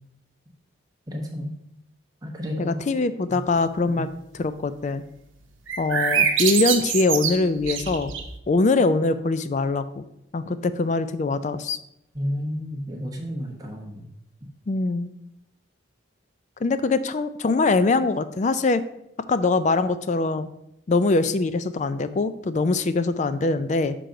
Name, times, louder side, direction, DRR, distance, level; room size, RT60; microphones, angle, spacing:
voice 1, 1.1-1.5 2.2-2.8 3.3-3.4 3.9-4.1 12.1-14.1, equal, 20° right, 0 dB, 1.0 m, -31 dB
voice 2, 2.6-4.1 4.3-5.0 5.8-8.1 8.5-10.0 10.3-11.8 14.7-15.1 16.6-18.8 19.3-20.5 20.9-24.0, left 3 dB, 35° left, 12 dB, 0.3 m, -23 dB
sound 1, 5.7-8.4, right 7 dB, 75° right, 0.9 m, -24 dB
6.4 x 3.8 x 5.7 m, 0.82 s
head